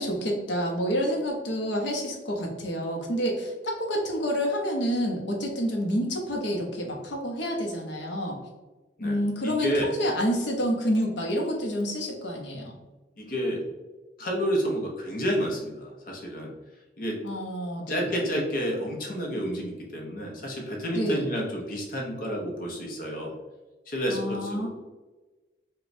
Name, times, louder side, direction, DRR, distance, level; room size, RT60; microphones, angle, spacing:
voice 1, 0.0-8.4 9.0-12.7 17.2-18.1 20.9-21.2 24.1-24.7, equal, 85° left, 1 dB, 0.9 m, -28 dB
voice 2, 9.4-9.9 13.2-13.6 14.2-16.5 17.0-17.2 17.9-23.3 23.9-24.7, equal, 50° left, -1 dB, 0.8 m, -30 dB
5.0 x 2.4 x 2.6 m, 1.2 s
head